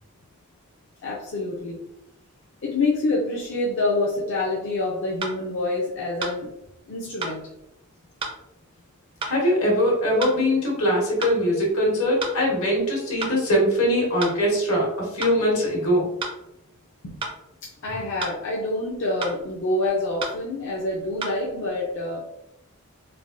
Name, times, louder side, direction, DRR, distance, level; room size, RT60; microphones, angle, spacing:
voice 1, 1.0-1.9 2.6-6.6 6.9-7.5 17.0-17.2 17.6-22.2, left 2 dB, 55° left, -4 dB, 0.5 m, -27 dB
sound 1, 5.2-5.4 6.2-6.4 7.2-7.4 8.2-8.4 9.2-9.4 10.2-10.4 11.2-11.4 12.2-12.4 13.2-13.4 14.2-14.4 15.2-15.4 16.2-16.4 17.2-17.4 18.2-18.4 19.2-19.4 20.2-20.4 21.2-21.4, right 3 dB, 25° right, 0.4 m, -31 dB
voice 2, 9.3-16.1, equal, 80° left, -3 dB, 1.2 m, -22 dB
3.3 x 2.2 x 2.5 m, 0.84 s
head